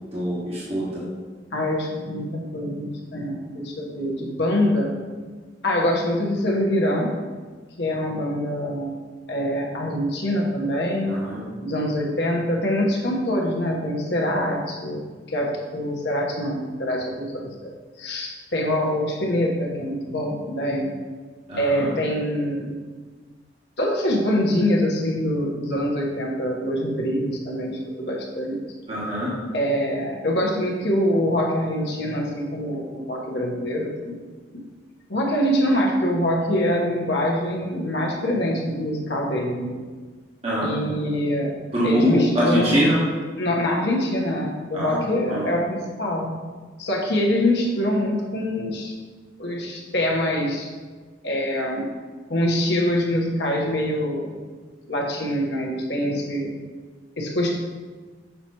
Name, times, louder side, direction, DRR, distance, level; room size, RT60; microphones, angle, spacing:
voice 1, 0.1-1.0 11.1-11.4 21.5-21.9 28.9-29.3 40.4-40.7 41.7-43.0 44.7-45.0 45.3-45.5, equal, 35° right, -8 dB, 1.4 m, -23 dB
voice 2, 1.5-4.9 5.6-7.1 7.8-9.0 9.3-11.2 11.6-15.0 15.3-17.7 18.0-20.9 21.6-22.7 23.8-28.6 29.5-34.2 34.5-34.6 35.1-39.7 40.6-41.5 41.8-42.8 43.4-46.3 46.8-48.9 49.4-50.7 51.2-51.9 52.3-54.3 54.9-56.5 57.2-57.6, left 1 dB, 65° left, -1 dB, 1.2 m, -24 dB
6.8 x 3.0 x 5.5 m, 1.4 s
head